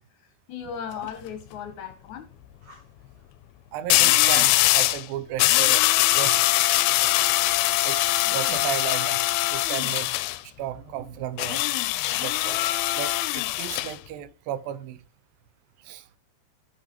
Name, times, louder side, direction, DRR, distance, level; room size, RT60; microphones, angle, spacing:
voice 1, 0.2-2.3, left 7 dB, 70° left, 1.9 m, -37 dB
sound 1, 0.7-1.1 3.9-5.0 5.4-10.4 11.4-13.9, left 17 dB, 85° left, 2.4 m, -22 dB
Fire, 2.6-3.0 4.6-4.9 6.6-7.5, right 1 dB, 45° right, 4.7 m, -54 dB
voice 2, 3.7-5.9 6.1-6.4 6.8-7.1 7.8-9.2 9.5-11.7 12.2-15.0 15.8-16.1, right 11 dB, 75° right, 2.5 m, -34 dB
15.5 x 6.1 x 2.9 m
omnidirectional pair, 4.3 m